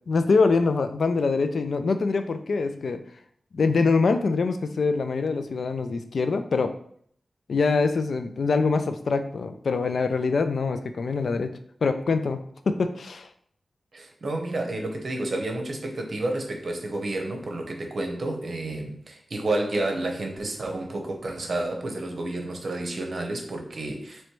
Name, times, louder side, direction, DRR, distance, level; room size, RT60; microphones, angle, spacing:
voice 1, 0.1-3.0 3.5-6.7 7.5-11.5 11.8-13.3, left 4 dB, 80° left, 9 dB, 0.3 m, -24 dB
voice 2, 13.9-24.2, right 2 dB, 65° right, 2 dB, 0.8 m, -30 dB
3.1 x 3.1 x 4.6 m, 0.64 s
wide cardioid pair, 115°, 0 cm